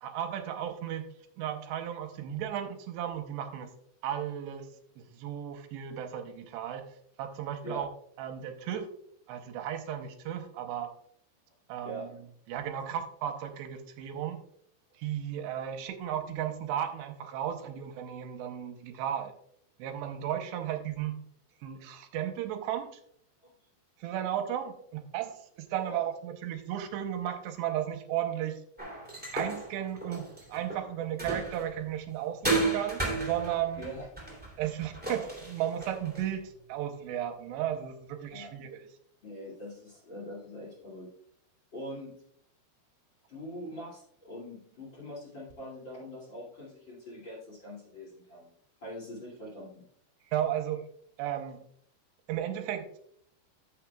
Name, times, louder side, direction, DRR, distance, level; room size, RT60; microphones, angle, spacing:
voice 1, 0.0-3.7 4.0-4.7 5.0-6.9 7.2-7.9 8.2-8.9 9.3-10.9 11.7-12.1 12.5-14.4 14.9-19.3 19.8-21.2 21.6-22.9 24.0-28.6 29.3-33.8 34.6-38.8 50.3-50.8 51.2-51.6 52.3-53.0, right 10 dB, 80° right, 6 dB, 2.8 m, -34 dB
voice 2, 11.8-12.1 23.4-23.5 25.9-26.0 33.8-34.1 38.3-38.5 39.2-41.1 41.7-42.1 43.3-48.5 48.8-49.8, equal, 35° left, -4 dB, 2.3 m, -43 dB
sound 1, 28.8-31.8 32.4-36.3, right 3 dB, 5° right, 1.5 m, -34 dB
14.5 x 6.6 x 2.3 m, 0.66 s
omnidirectional pair, 5.3 m